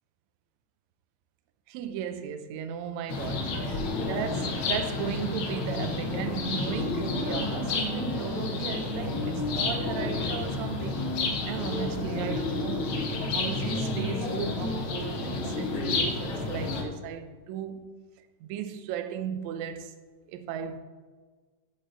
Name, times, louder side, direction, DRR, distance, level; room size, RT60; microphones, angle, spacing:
voice 1, 1.7-17.9 18.4-20.0 20.3-20.8, right 8 dB, 75° right, 1.7 m, -36 dB
sound 1, 3.1-16.8, left 3 dB, 70° left, 1.2 m, -30 dB
8.1 x 6.6 x 3.9 m
omnidirectional pair, 3.6 m